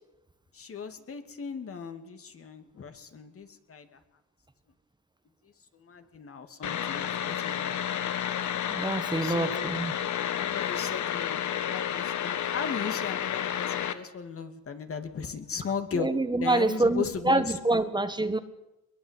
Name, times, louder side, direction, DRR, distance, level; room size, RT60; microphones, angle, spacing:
voice 1, 0.5-4.0 5.7-8.3 9.2-9.7 10.4-16.1 16.4-17.8, left 6 dB, 50° left, 8 dB, 2.6 m, -37 dB
sound 1, 6.6-13.9, left 9 dB, 70° left, 1.8 m, -31 dB
voice 2, 8.7-9.9 15.9-18.4, right 2 dB, 15° right, 10 dB, 1.6 m, -26 dB
22.0 x 21.5 x 8.4 m, 0.92 s
cardioid pair, 90°, 30 cm